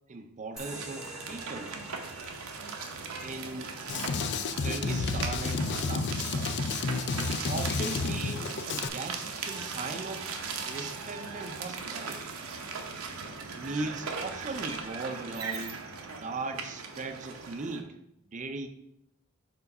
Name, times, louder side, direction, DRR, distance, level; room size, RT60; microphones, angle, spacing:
voice 1, 0.1-1.9 3.2-3.7 4.6-6.6 7.1-12.3 13.5-15.7 16.1-17.9 18.2-18.7, right 3 dB, 35° right, 7 dB, 0.5 m, -38 dB
sound 1, 0.5-17.8, right 5 dB, 70° right, 0.8 m, -39 dB
sound 2, 0.6-7.6, right 1 dB, ahead, 0.9 m, -50 dB
Drum kit, 3.9-8.9, left 4 dB, 50° left, 0.4 m, -31 dB
4.7 x 3.8 x 5.3 m, 0.80 s
head